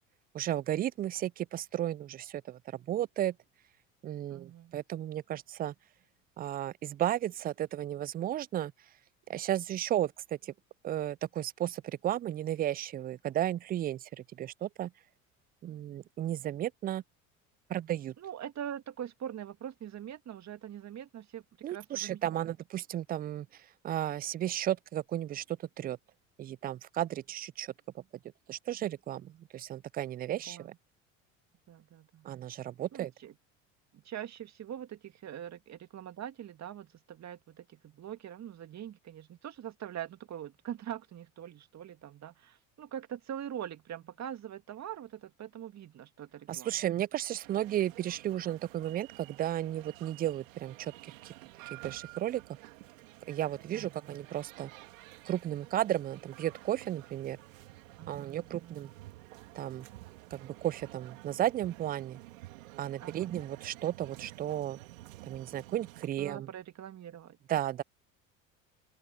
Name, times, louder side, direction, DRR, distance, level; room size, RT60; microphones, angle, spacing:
voice 1, 0.3-3.3 4.0-5.7 6.4-8.7 9.3-10.1 10.4-10.5 10.8-14.9 15.6-17.0 17.7-18.1 21.6-23.5 23.8-26.0 26.4-28.0 28.5-30.7 32.2-33.1 46.5-51.3 51.7-52.4 53.3-54.7 55.3-57.4 58.1-58.9 59.5-59.9 60.3-62.2 62.8-64.8 65.3-66.5 67.5-67.8, right 12 dB, 25° right, 0.3 m, -34 dB
voice 2, 4.3-4.7 18.2-22.5 30.5-30.8 31.7-32.3 32.9-33.3 33.9-46.7 53.7-54.2 58.0-58.8 63.0-63.3 66.2-67.4, right 10 dB, 40° right, 2.2 m, -43 dB
sound 1, 47.4-66.1, right 19 dB, 75° right, 3.0 m, -51 dB
open air
hypercardioid pair, 70°, 40 cm